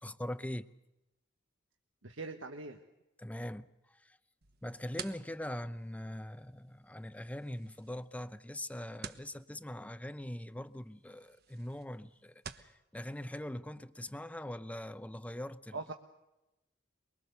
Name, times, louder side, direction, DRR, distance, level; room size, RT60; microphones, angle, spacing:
voice 1, 0.0-0.7 3.2-4.2 4.6-15.9, left 1 dB, 5° left, 0.7 m, -42 dB
voice 2, 2.0-2.8 15.7-15.9, right 3 dB, 90° right, 1.4 m, -41 dB
sound 1, 4.4-12.7, right 6 dB, 55° right, 1.3 m, -52 dB
24.0 x 23.5 x 6.8 m
head